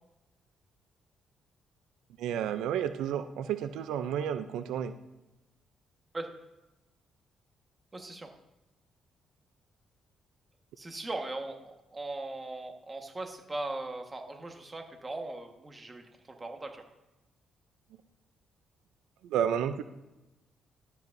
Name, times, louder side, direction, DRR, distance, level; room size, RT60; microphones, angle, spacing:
voice 1, 2.2-4.9 19.2-19.8, right 9 dB, 90° right, 10 dB, 0.4 m, -31 dB
voice 2, 7.9-8.3 10.8-16.8, right 2 dB, 25° right, 3 dB, 1.4 m, -39 dB
12.0 x 8.2 x 2.6 m, 0.99 s
cardioid pair, 90°, 0 cm